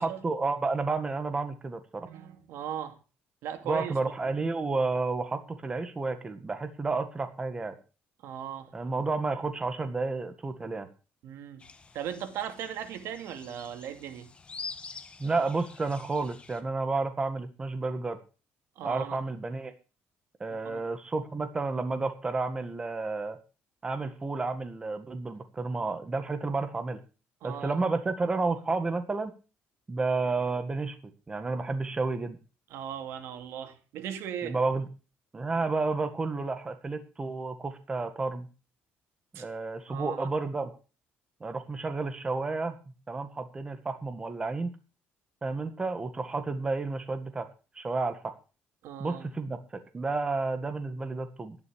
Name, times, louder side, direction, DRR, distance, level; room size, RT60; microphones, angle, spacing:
voice 1, 0.0-2.1 3.6-7.7 8.7-10.9 15.2-18.2 18.8-19.7 20.4-23.4 23.8-27.0 27.4-29.3 29.9-31.0 31.3-32.4 34.4-34.9 35.3-38.5 39.3-40.7 41.4-42.8 43.1-44.7 45.4-47.5 47.7-48.3 49.0-51.6, right 3 dB, 20° right, 1.8 m, -31 dB
voice 2, 2.0-3.0 3.4-4.0 8.2-8.7 11.2-11.7 11.9-14.3 18.8-19.2 20.5-20.8 27.4-27.7 32.7-34.6 39.3-39.5 39.9-40.3 48.8-49.3, right 9 dB, 80° right, 2.5 m, -38 dB
sound 1, 11.6-16.6, left 5 dB, 25° left, 1.6 m, -46 dB
11.5 x 11.0 x 6.4 m
cardioid pair, 130°, 4 cm